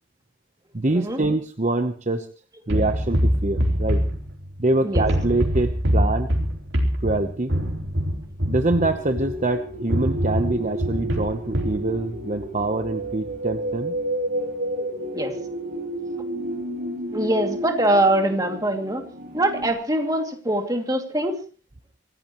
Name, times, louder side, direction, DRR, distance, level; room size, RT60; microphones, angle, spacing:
voice 1, 0.7-2.3 2.7-4.0 4.6-6.3 7.0-7.5 8.5-14.0, right 2 dB, 40° right, 8 dB, 0.9 m, -25 dB
sound 1, 2.7-4.6 4.9-9.4 9.9-11.8, equal, 75° right, 3.8 m, -24 dB
sound 2, 8.7-19.7, right 1 dB, 55° right, 6.5 m, -31 dB
voice 2, 17.1-19.0 19.3-21.4, right 1 dB, 20° right, 4 dB, 2.5 m, -23 dB
25.5 x 16.0 x 3.1 m, 0.37 s
head